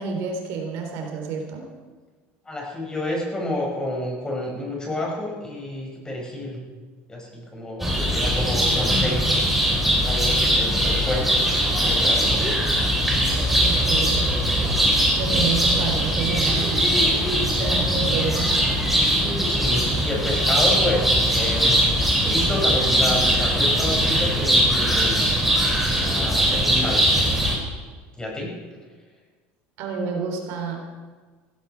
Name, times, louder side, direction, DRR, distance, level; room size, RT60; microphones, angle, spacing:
voice 1, 0.0-1.6 13.6-14.3 15.2-16.8 17.5-18.8 29.8-30.8, right 5 dB, 65° right, 2 dB, 3.4 m, -29 dB
voice 2, 2.5-6.6 7.1-11.4 11.8-12.4 19.5-21.9 22.2-25.4 26.0-27.2 28.2-28.5, left 1 dB, 15° left, -1 dB, 5.8 m, -29 dB
sound 1, 7.8-27.5, equal, 5° right, 5.0 m, -21 dB
16.5 x 15.5 x 4.6 m, 1.4 s
supercardioid pair, 115°, 5 cm